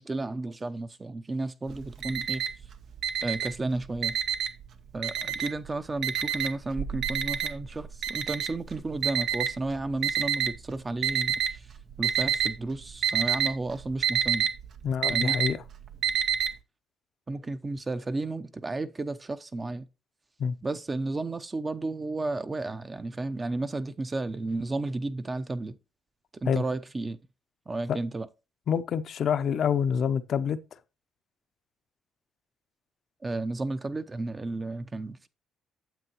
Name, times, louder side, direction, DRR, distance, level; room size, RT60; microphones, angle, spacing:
voice 1, 0.0-2.4 3.2-4.2 4.9-11.7 12.0-14.5 15.1-15.4 17.3-19.9 20.6-25.8 26.3-27.2 27.7-28.3 33.2-35.3, right 2 dB, 30° right, 0.7 m, -33 dB
Alarm, 1.7-2.7 3.0-4.6 5.0-5.7 6.0-10.5 11.0-11.6 11.9-12.6 12.8-16.5, right 8 dB, 65° right, 0.8 m, -27 dB
voice 2, 14.8-15.6 20.4-20.6 26.5-26.6 27.9-28.0 28.7-30.6, left 7 dB, 65° left, 0.6 m, -26 dB
9.2 x 7.7 x 3.0 m
supercardioid pair, 65°, 0 cm